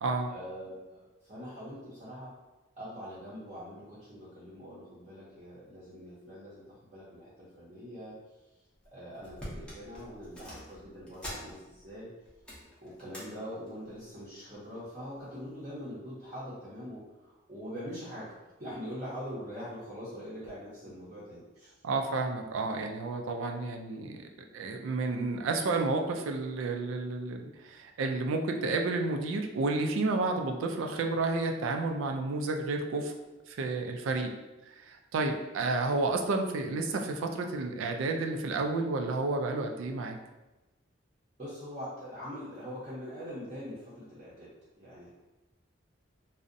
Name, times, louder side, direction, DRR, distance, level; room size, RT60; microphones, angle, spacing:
voice 1, 0.3-2.3 2.8-8.2 8.9-12.1 12.8-21.7 41.4-45.2, equal, 35° right, -10 dB, 0.6 m, -43 dB
sound 1, 8.7-8.9 9.2-11.9 12.2-13.3 13.7-14.0 14.8-15.2 15.7-15.8, equal, 5° left, 0.5 m, -45 dB
voice 2, 21.8-24.2 24.5-33.1 33.5-34.3 34.7-40.2, right 3 dB, 75° right, 4 dB, 0.3 m, -31 dB
2.5 x 2.0 x 2.5 m, 1.1 s
head